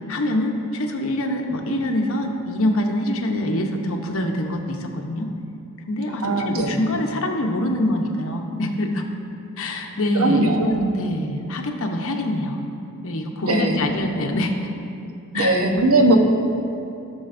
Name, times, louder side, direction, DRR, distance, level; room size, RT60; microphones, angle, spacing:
voice 1, 0.0-5.3 5.9-9.1 9.6-12.6 13.0-14.5 15.3-16.0, left 1 dB, 65° left, 3 dB, 0.9 m, -25 dB
voice 2, 6.2-6.8 10.1-10.7 13.5-13.8 15.3-16.2, right 2 dB, 80° right, 3 dB, 1.0 m, -19 dB
17.0 x 6.3 x 2.6 m, 2.7 s
head